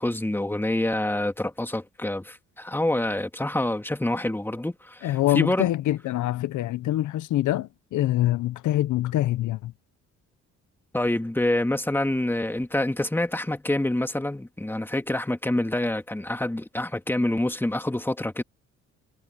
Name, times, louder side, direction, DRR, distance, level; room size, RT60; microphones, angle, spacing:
voice 1, 0.0-5.7 10.9-18.4, left 1 dB, 5° left, 2.0 m, -27 dB
voice 2, 5.0-9.7, left 14 dB, 75° left, 0.8 m, -25 dB
cardioid pair, 90°, 30 cm